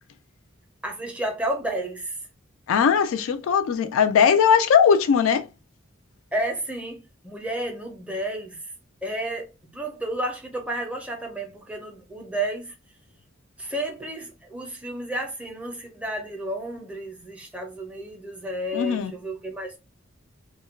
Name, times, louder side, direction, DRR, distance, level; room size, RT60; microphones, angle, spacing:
voice 1, 0.8-2.2 6.3-8.6 9.0-12.7 13.6-19.8, right 1 dB, 5° right, 0.4 m, -31 dB
voice 2, 2.7-5.4 18.7-19.1, left 7 dB, 80° left, 0.3 m, -19 dB
2.2 x 2.1 x 3.1 m
head